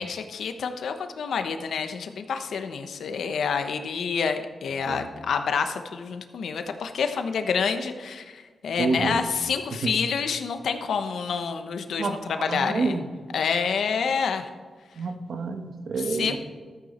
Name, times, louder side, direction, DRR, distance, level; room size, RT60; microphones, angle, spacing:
voice 1, 0.0-13.0 13.3-14.5 16.1-16.4, left 6 dB, 85° left, 7 dB, 1.0 m, -28 dB
voice 2, 8.8-9.2 9.8-9.9 12.0-13.1 15.0-16.4, right 4 dB, 70° right, 7 dB, 1.2 m, -28 dB
13.5 x 8.6 x 4.3 m, 1.5 s
wide cardioid pair, 115°, 0 cm